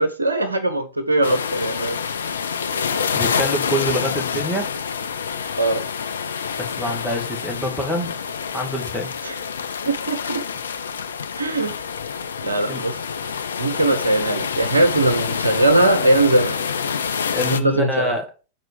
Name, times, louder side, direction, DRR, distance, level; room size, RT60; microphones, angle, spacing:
voice 1, 0.0-2.0 5.6-5.8 9.2-9.3 9.9-10.4 11.4-11.8 12.4-12.9 13.6-16.6 17.5-18.1, right 2 dB, 80° right, 9 dB, 0.9 m, -20 dB
sound 1, 1.2-17.6, left 6 dB, 70° left, 0.5 m, -27 dB
voice 2, 3.1-4.7 6.6-8.2 8.5-9.1 12.7-12.8 17.3-18.3, equal, 5° right, 2 dB, 2.3 m, -26 dB
7.9 x 4.5 x 4.8 m, 0.33 s
figure-of-eight pair, 90°, 0 cm